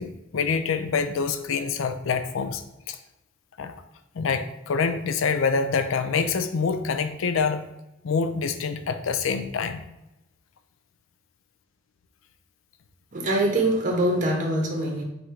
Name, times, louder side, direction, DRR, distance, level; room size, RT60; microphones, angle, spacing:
voice 1, 0.0-3.0 3.6-3.7 4.1-7.6 8.0-9.8, left 5 dB, 85° left, 10 dB, 0.4 m, -26 dB
voice 2, 13.1-15.0, right 1 dB, 40° right, 0 dB, 0.8 m, -24 dB
4.8 x 2.6 x 4.3 m, 0.93 s
head